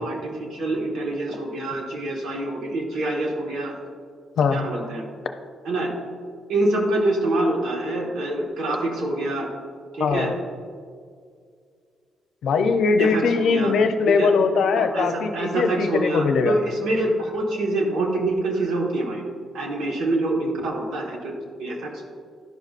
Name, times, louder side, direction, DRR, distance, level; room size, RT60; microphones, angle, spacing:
voice 1, 0.0-3.8 4.5-5.1 5.6-5.9 6.5-9.5 9.9-10.3 13.0-13.7 14.2-14.3 14.8-19.2 19.5-22.1, right 2 dB, 80° right, -1 dB, 1.4 m, -26 dB
voice 2, 10.0-10.4 12.4-16.5, left 5 dB, 70° left, 6 dB, 0.6 m, -21 dB
12.0 x 5.2 x 2.4 m, 2.1 s
cardioid pair, 90°, 0 cm